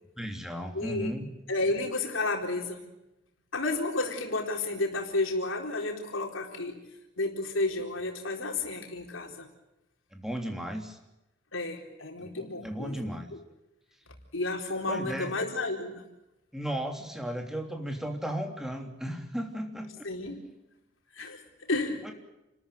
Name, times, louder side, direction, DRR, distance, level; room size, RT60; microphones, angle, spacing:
voice 1, 0.2-1.3 10.1-11.0 12.2-13.2 14.9-15.3 16.5-20.0 22.0-22.1, equal, ahead, 3 dB, 3.2 m, -35 dB
voice 2, 0.7-1.2 1.5-2.9 3.5-6.8 7.2-9.5 11.5-13.0 13.3-13.4 14.3-16.0 20.0-20.4 21.1-22.1, left 2 dB, 85° left, 2 dB, 4.3 m, -31 dB
30.0 x 14.0 x 9.2 m, 0.94 s
head